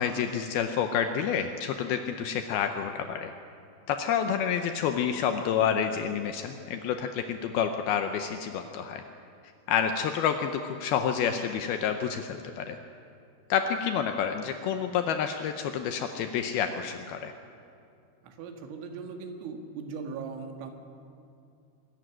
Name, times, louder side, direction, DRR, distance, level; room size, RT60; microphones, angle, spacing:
voice 1, 0.0-3.3 3.9-9.0 9.7-12.8 13.5-17.3, left 8 dB, 90° left, 6 dB, 2.2 m, -29 dB
voice 2, 18.2-20.7, right 5 dB, 85° right, 4 dB, 4.2 m, -39 dB
23.0 x 14.0 x 9.9 m, 2.5 s
omnidirectional pair, 5.4 m